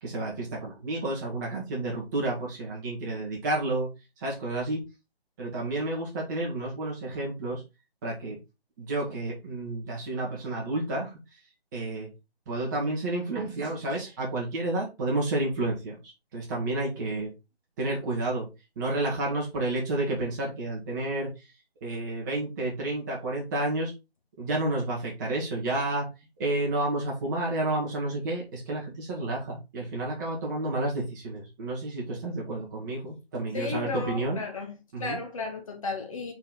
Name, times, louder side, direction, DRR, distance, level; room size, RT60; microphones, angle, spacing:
voice 1, 0.0-3.9 4.2-4.8 5.4-7.6 8.0-8.4 8.8-11.1 11.7-12.1 12.5-15.9 16.3-17.3 17.8-18.5 18.8-21.4 21.8-23.9 24.4-26.1 26.4-34.4 34.9-35.2, right 2 dB, 20° right, 1.8 m, -30 dB
voice 2, 33.5-34.7 35.0-36.3, left 4 dB, 30° left, 1.5 m, -34 dB
5.5 x 4.6 x 4.2 m
figure-of-eight pair, 155°, 31 cm